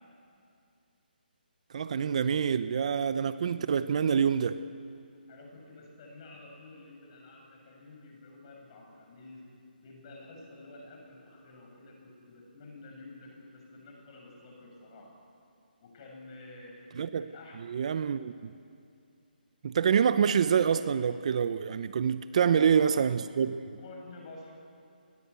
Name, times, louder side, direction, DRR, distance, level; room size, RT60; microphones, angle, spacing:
voice 1, 1.7-4.6 17.0-17.3 17.6-18.5 19.6-23.8, right 7 dB, 40° right, 13 dB, 0.7 m, -26 dB
voice 2, 5.3-9.4 9.8-15.1 15.8-16.8 17.1-17.6 22.3-23.1 23.8-24.5, left 2 dB, 30° left, 0 dB, 7.1 m, -49 dB
27.5 x 20.5 x 8.4 m, 2.5 s
hypercardioid pair, 165°, 5 cm